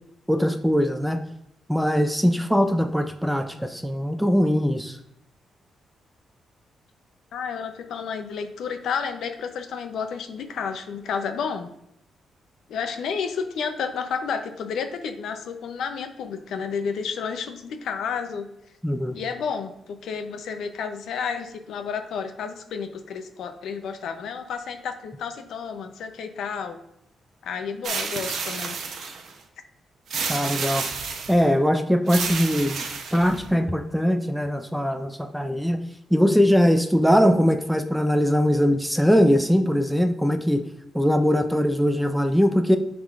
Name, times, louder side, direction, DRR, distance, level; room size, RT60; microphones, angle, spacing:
voice 1, 0.3-1.2 1.7-5.0 18.8-19.2 30.3-30.9 31.3-32.8 33.1-35.8 36.1-40.6 40.9-42.8, equal, ahead, 7 dB, 0.3 m, -21 dB
voice 2, 7.3-11.7 12.7-18.5 19.1-26.8 27.4-28.8, left 6 dB, 75° left, 7 dB, 0.6 m, -31 dB
sound 1, 27.8-29.3 30.1-31.4 32.1-33.5, right 5 dB, 60° right, 0.7 m, -30 dB
10.5 x 3.7 x 2.4 m, 0.79 s
wide cardioid pair, 165°, 0 cm